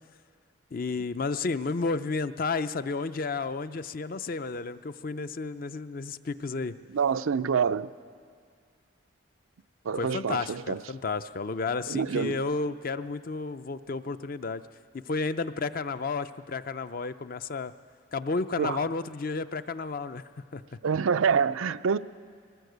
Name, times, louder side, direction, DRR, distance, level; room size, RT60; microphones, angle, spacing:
voice 1, 0.7-6.7 10.0-14.6 14.9-17.7 18.1-20.2 20.5-20.6, left 4 dB, 45° left, 0.5 m, -32 dB
voice 2, 6.9-7.9 9.9-10.8 11.9-12.4 18.6-18.8 20.8-22.0, right 6 dB, 90° right, 0.5 m, -26 dB
21.0 x 18.0 x 8.0 m
head